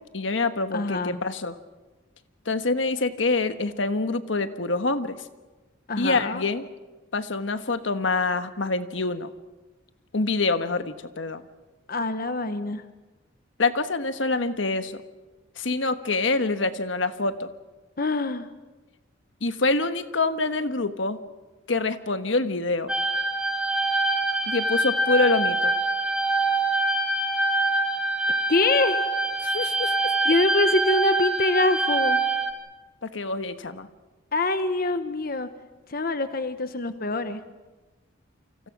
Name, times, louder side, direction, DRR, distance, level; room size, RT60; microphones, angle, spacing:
voice 1, 0.1-1.6 2.4-5.2 6.0-6.6 7.1-9.3 10.1-11.4 13.6-15.0 15.6-17.5 19.4-21.2 21.7-22.9 24.5-25.7 29.4-30.1 33.1-33.9, left 3 dB, 75° left, 9 dB, 1.4 m, -26 dB
voice 2, 0.7-1.2 5.9-6.4 11.9-12.8 18.0-18.5 28.5-29.1 30.2-32.2 34.3-35.5 35.9-37.4, left 2 dB, 50° left, 9 dB, 1.0 m, -25 dB
sound 1, 22.9-32.5, right 2 dB, 5° right, 2.8 m, -24 dB
29.0 x 25.0 x 6.0 m, 1.2 s
head